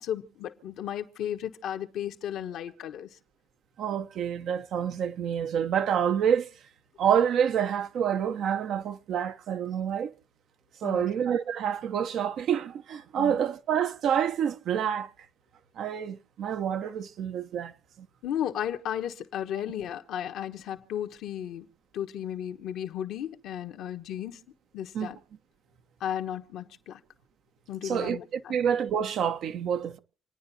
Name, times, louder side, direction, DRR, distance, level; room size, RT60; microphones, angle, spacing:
voice 1, 0.0-3.1 10.8-11.1 13.2-13.4 18.2-21.7 21.9-24.4 24.7-25.2 26.0-27.0 27.7-28.6, left 10 dB, 75° left, 1.2 m, -34 dB
voice 2, 3.8-6.5 7.0-10.1 10.8-15.1 15.8-18.1 24.9-25.1 27.8-30.0, right 8 dB, 70° right, 0.9 m, -28 dB
28.0 x 9.8 x 2.8 m
supercardioid pair, 55°, 0 cm